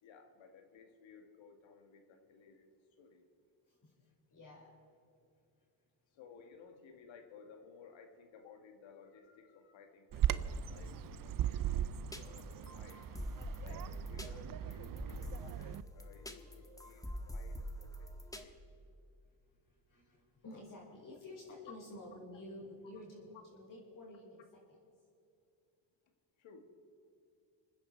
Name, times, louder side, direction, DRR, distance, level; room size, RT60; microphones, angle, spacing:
voice 1, 0.0-2.7 3.0-3.3 6.1-13.1 13.6-18.6 26.4-26.8, left 5 dB, 70° left, 6 dB, 2.0 m, -58 dB
voice 2, 4.3-4.7 19.7-24.4, left 1 dB, 40° left, -4 dB, 4.9 m, -51 dB
Bird vocalization bird call bird song, 10.1-15.8, right 10 dB, 45° right, 0.6 m, -38 dB
sound 1, 12.1-18.5, left 1 dB, 5° left, 1.4 m, -46 dB
27.0 x 9.9 x 4.6 m, 2.6 s
cardioid pair, 90°, 47 cm